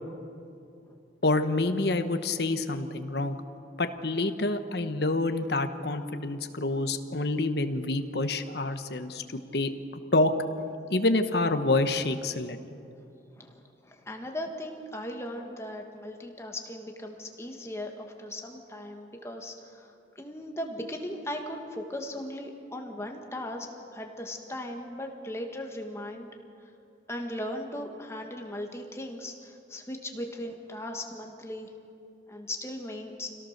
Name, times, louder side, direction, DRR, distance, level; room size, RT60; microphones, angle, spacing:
voice 1, 1.2-3.4 3.8-9.2 9.5-9.7 10.1-10.3 10.9-12.6, left 2 dB, 60° left, 8 dB, 1.1 m, -27 dB
voice 2, 13.4-26.3 27.1-31.7 32.3-33.3, left 1 dB, 15° left, 2 dB, 1.6 m, -38 dB
26.0 x 17.5 x 6.6 m, 2.6 s
head